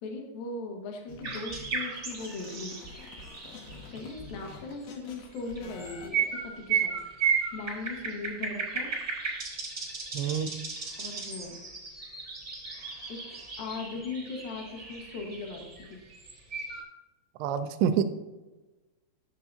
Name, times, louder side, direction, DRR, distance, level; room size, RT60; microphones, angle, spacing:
voice 1, 0.0-3.1 3.9-7.2 7.5-8.9 11.0-11.6 13.1-13.2 13.6-16.0, left 3 dB, 65° left, 1 dB, 2.6 m, -39 dB
sound 1, 1.1-6.1, left 4 dB, 80° left, 2.0 m, -47 dB
sound 2, 1.2-4.7 5.3-16.8, right 6 dB, 40° right, 1.0 m, -35 dB
voice 2, 10.1-10.6 17.4-18.0, right 8 dB, 85° right, 9 dB, 2.7 m, -27 dB
12.5 x 7.5 x 2.7 m, 1.2 s
omnidirectional pair, 5.4 m